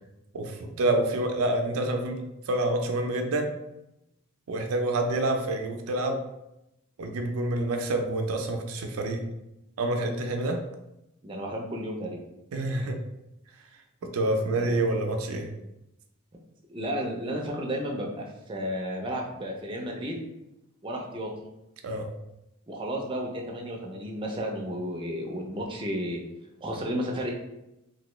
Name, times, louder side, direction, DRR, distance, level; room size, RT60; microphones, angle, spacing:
voice 1, 0.3-2.2 2.5-3.5 4.5-6.2 7.0-9.2 9.8-10.6 12.5-13.0 14.0-15.5 21.8-22.1, right 2 dB, 80° right, 4 dB, 0.4 m, -27 dB
voice 2, 11.2-12.2 14.5-14.8 16.7-20.2 20.8-21.3 22.7-26.2 26.6-27.3, equal, 25° right, 0 dB, 0.4 m, -32 dB
3.0 x 2.6 x 3.0 m, 0.89 s
head